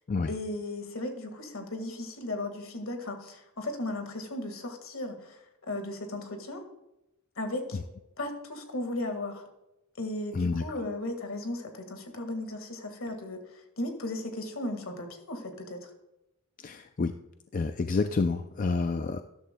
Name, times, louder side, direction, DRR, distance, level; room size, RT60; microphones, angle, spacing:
voice 1, 0.3-6.6 7.4-7.8 8.2-9.5 10.0-15.9, left 1 dB, 70° left, 5 dB, 1.7 m, -36 dB
voice 2, 10.3-10.8 16.6-17.1 17.5-19.2, left 4 dB, 35° left, 8 dB, 0.3 m, -29 dB
13.0 x 11.5 x 2.2 m, 0.92 s
head